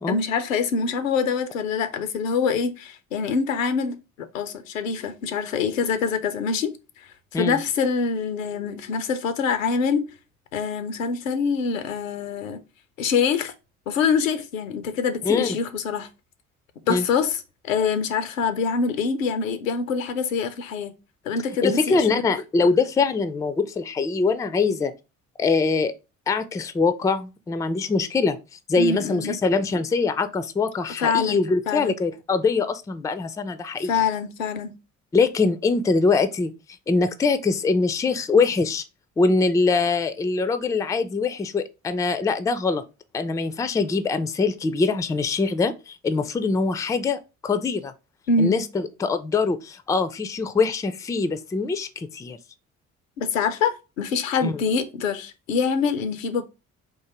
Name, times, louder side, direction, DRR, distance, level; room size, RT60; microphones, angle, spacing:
voice 1, 0.1-6.7 7.3-10.1 10.5-12.6 13.0-13.5 13.9-16.1 16.9-20.9 21.3-22.2 28.8-29.4 31.0-31.9 33.9-34.7 48.3-48.6 53.2-56.4, left 5 dB, 80° left, 0.5 m, -25 dB
voice 2, 21.6-24.9 25.4-25.9 26.3-28.4 28.7-33.9 35.1-36.5 36.9-38.8 39.2-42.8 43.1-47.9 48.4-52.4 54.4-54.6, left 4 dB, 10° left, 0.3 m, -23 dB
3.7 x 2.6 x 4.3 m
figure-of-eight pair, 45°, 39 cm